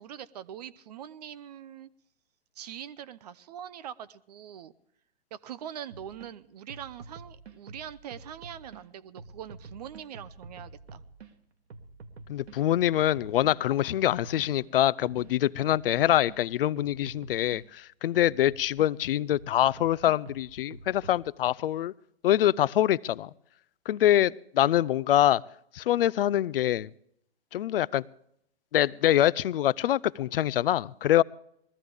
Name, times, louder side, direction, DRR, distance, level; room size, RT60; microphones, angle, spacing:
voice 1, 0.0-1.9 2.6-4.7 5.3-11.0, right 10 dB, 40° right, 16 dB, 0.5 m, -43 dB
sound 1, 5.9-6.3 6.7-8.8 9.2-11.3 11.7-16.4 16.8-17.6 18.1-18.9 19.3-21.2, right 3 dB, 80° right, 1.4 m, -48 dB
voice 2, 12.3-21.9 22.2-23.3 23.9-25.4 25.7-26.9 27.5-28.1 28.7-31.2, left 12 dB, 60° left, 21 dB, 0.5 m, -25 dB
21.0 x 14.0 x 3.5 m, 0.73 s
hypercardioid pair, 140°, 32 cm